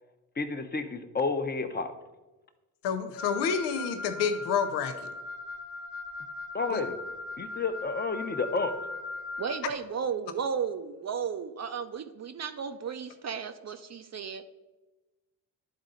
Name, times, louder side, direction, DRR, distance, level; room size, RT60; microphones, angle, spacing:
voice 1, 0.4-1.9 6.5-7.0 7.4-8.7, left 4 dB, 25° left, 8 dB, 0.8 m, -30 dB
voice 2, 2.8-5.1 6.7-6.8, left 6 dB, 85° left, 8 dB, 0.7 m, -29 dB
Wind instrument woodwind instrument, 3.2-9.6, left 3 dB, 60° left, 1.1 m, -39 dB
voice 3, 9.4-14.4, right 6 dB, 40° right, 8 dB, 0.5 m, -34 dB
11.0 x 3.9 x 3.9 m, 1.1 s
supercardioid pair, 60°, 40 cm